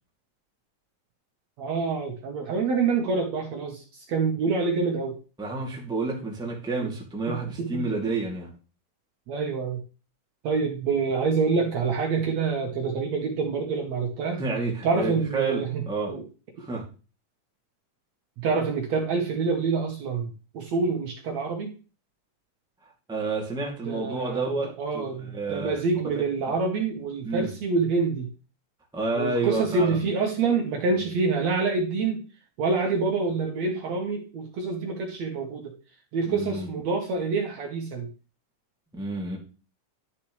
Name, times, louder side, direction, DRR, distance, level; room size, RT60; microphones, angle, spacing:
voice 1, 1.6-5.2 6.8-6.9 7.3-7.9 9.3-9.8 10.4-14.4 14.8-15.8 16.1-16.2 18.4-20.3 20.5-21.7 23.9-24.5 24.8-28.3 29.1-32.2 32.6-35.7 36.1-38.1, right 4 dB, 60° right, 1 dB, 2.3 m, -26 dB
voice 2, 5.4-8.5 14.4-16.1 16.6-16.8 23.1-25.8 27.2-27.5 28.9-30.1 30.9-31.1 36.3-36.7 38.9-39.4, right 3 dB, ahead, -2 dB, 2.0 m, -30 dB
11.5 x 6.8 x 3.3 m, 0.34 s
omnidirectional pair, 3.9 m